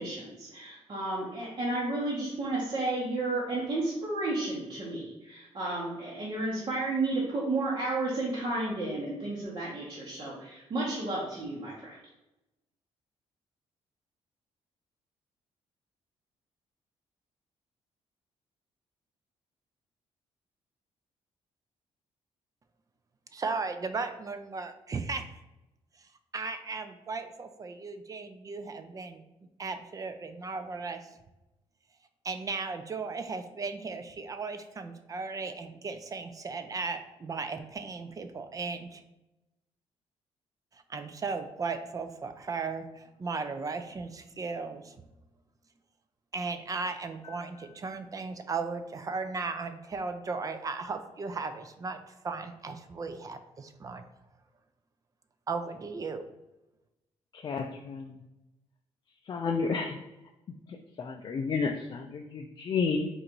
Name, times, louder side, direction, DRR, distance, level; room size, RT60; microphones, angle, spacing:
voice 1, 0.0-12.0, right 2 dB, 50° right, -6 dB, 1.0 m, -32 dB
voice 2, 23.3-25.3 26.3-29.2 29.6-31.1 32.2-39.0 40.7-45.0 46.3-54.0 55.5-56.2, right 4 dB, 30° right, 9 dB, 0.4 m, -36 dB
voice 3, 57.3-58.2 59.3-60.0 60.7-63.1, left 4 dB, 40° left, 3 dB, 0.4 m, -31 dB
3.9 x 2.6 x 4.4 m, 0.99 s
cardioid pair, 105°, 11 cm